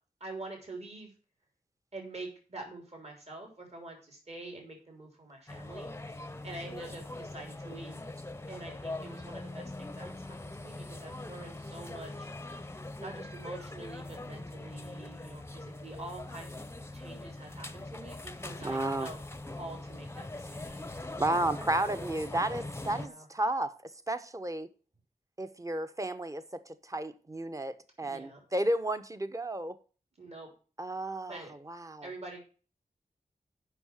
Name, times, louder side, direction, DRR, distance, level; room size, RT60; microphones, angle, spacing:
voice 1, 0.2-1.1 1.9-8.0 8.5-12.3 13.0-16.6 16.9-19.2 19.5-20.9 22.8-23.3 28.0-28.4 30.2-30.5 31.2-31.5 32.0-32.4, right 2 dB, 45° right, 3.6 m, -46 dB
sound 1, 5.5-23.1, left 2 dB, 15° left, 0.8 m, -42 dB
voice 2, 18.6-19.1 21.2-23.7 24.1-24.7 25.4-29.8 30.8-32.1, right 1 dB, 20° right, 1.1 m, -32 dB
8.0 x 5.9 x 7.3 m
cardioid pair, 60°, 15 cm